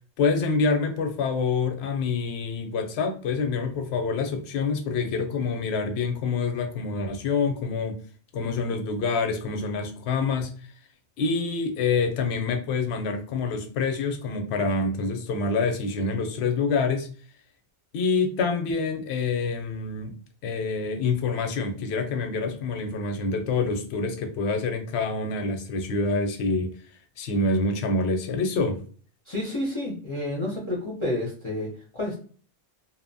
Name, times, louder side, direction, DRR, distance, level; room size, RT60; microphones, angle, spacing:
voice 1, 0.2-8.0 8.3-10.5 11.2-17.1 17.9-20.1 20.4-26.7 27.2-28.8, left 4 dB, 80° left, 0.8 m, -26 dB
voice 2, 29.3-32.1, left 1 dB, 35° left, 0.6 m, -30 dB
2.7 x 2.0 x 2.6 m
omnidirectional pair, 1.1 m